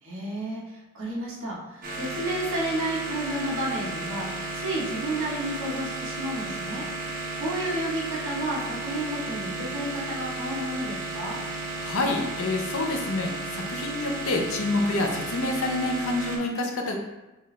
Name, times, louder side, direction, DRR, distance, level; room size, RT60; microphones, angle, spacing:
voice 1, 0.0-6.8 7.3-11.4, right 1 dB, 60° right, -4 dB, 1.2 m, -31 dB
sound 1, 1.8-16.4, right 3 dB, 40° right, 1.0 m, -34 dB
voice 2, 11.8-17.0, left 2 dB, 65° left, 2 dB, 0.7 m, -27 dB
5.4 x 2.6 x 3.2 m, 1.0 s
head